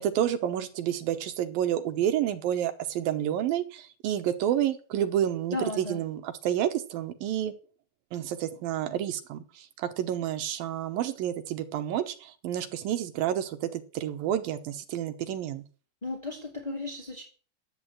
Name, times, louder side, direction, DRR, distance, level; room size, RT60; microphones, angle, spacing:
voice 1, 0.0-7.5 8.1-15.6, right 10 dB, 70° right, 9 dB, 2.5 m, -29 dB
voice 2, 5.5-6.0 16.0-17.2, left 2 dB, 20° left, 0 dB, 1.2 m, -34 dB
11.5 x 8.3 x 8.8 m, 0.39 s
omnidirectional pair, 4.8 m